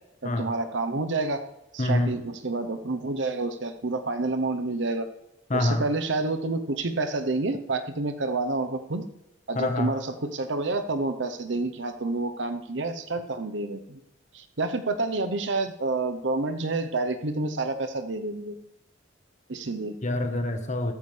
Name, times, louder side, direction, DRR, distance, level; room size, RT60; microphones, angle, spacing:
voice 1, 0.2-1.4 1.7-5.1 5.5-9.1 9.5-14.0 14.3-18.6 19.5-20.0, right 3 dB, 75° right, 8 dB, 0.9 m, -29 dB
voice 2, 1.8-2.2 5.5-5.8 9.5-9.9 20.0-20.9, left 2 dB, 40° left, 6 dB, 1.3 m, -26 dB
14.5 x 14.0 x 3.4 m, 0.91 s
head